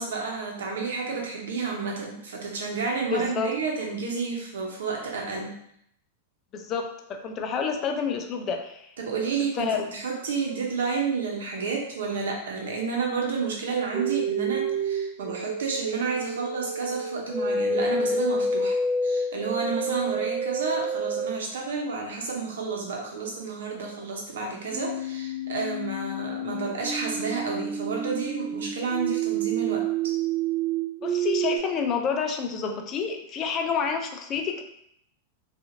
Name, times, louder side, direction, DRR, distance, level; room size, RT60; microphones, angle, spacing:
voice 1, 0.0-5.5 9.0-18.8 19.0-30.1, right 4 dB, 85° right, 0 dB, 0.8 m, -30 dB
voice 2, 3.1-3.5 6.5-8.9 9.6-9.9 31.0-34.6, left 6 dB, 35° left, 5 dB, 0.4 m, -28 dB
sound 1, 13.9-21.4 24.7-31.6, right 3 dB, 25° right, 0.5 m, -29 dB
2.8 x 2.4 x 2.7 m, 0.72 s
hypercardioid pair, 125°, 0 cm